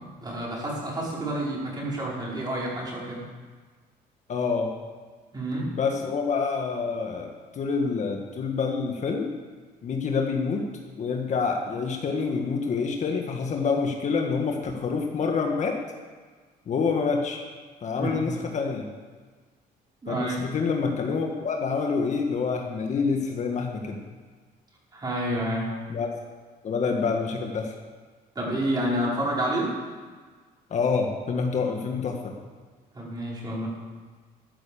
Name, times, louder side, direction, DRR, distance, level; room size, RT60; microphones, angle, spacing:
voice 1, 0.0-3.2 5.3-5.7 18.0-18.2 20.0-20.4 24.9-25.7 28.3-29.7 32.9-33.7, right 1 dB, 25° right, -4 dB, 5.1 m, -29 dB
voice 2, 4.3-4.7 5.7-9.3 9.8-10.6 11.0-15.8 16.7-17.4 17.8-18.9 20.1-24.0 25.9-26.1 26.6-27.7 30.7-32.3, left 5 dB, 45° left, 2 dB, 1.7 m, -27 dB
13.5 x 9.9 x 7.1 m, 1.5 s
cardioid pair, 110°, 17 cm